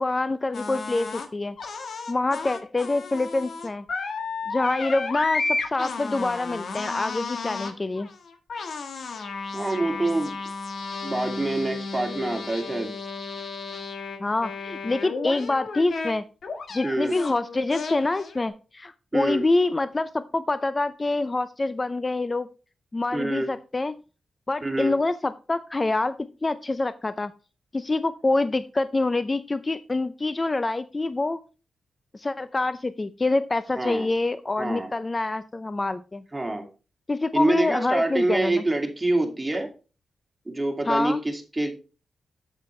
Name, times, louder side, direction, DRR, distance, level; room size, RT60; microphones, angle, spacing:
voice 1, 0.0-1.6 2.1-3.8 4.5-8.1 14.2-16.3 16.7-22.5 22.9-24.0 24.5-27.3 27.7-31.4 32.1-36.2 37.1-38.6 40.9-41.2, left 2 dB, 30° left, 13 dB, 0.5 m, -26 dB
sound 1, 0.5-1.3 1.6-16.1 16.4-18.5, left 4 dB, 65° left, 1.5 m, -33 dB
voice 2, 9.5-10.3 11.0-12.9 16.8-17.1 19.1-19.4 23.1-23.5 24.6-24.9 33.8-34.1 34.6-34.9 36.3-36.7 37.3-39.7 40.5-41.7, right 2 dB, 20° right, 3 dB, 2.4 m, -26 dB
8.1 x 8.1 x 3.2 m, 0.33 s
cardioid pair, 55°, 0 cm